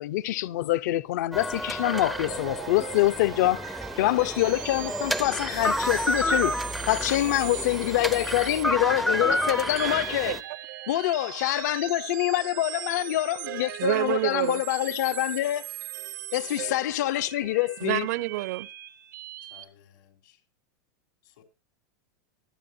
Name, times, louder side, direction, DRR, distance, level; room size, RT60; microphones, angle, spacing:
voice 1, 0.0-6.6 6.9-10.4 10.9-15.7 16.3-18.1, left 16 dB, 60° left, 0.7 m, -25 dB
sound 1, 1.3-10.4, equal, ahead, 0.5 m, -30 dB
sound 2, 1.8-19.6, right 14 dB, 80° right, 1.2 m, -40 dB
voice 2, 9.8-10.9 13.8-14.6 17.8-18.7, right 17 dB, 55° right, 0.6 m, -29 dB
voice 3, 19.4-20.4 21.2-21.4, left 10 dB, 80° left, 3.7 m, -57 dB
22.5 x 8.6 x 2.7 m
supercardioid pair, 170°, 10 cm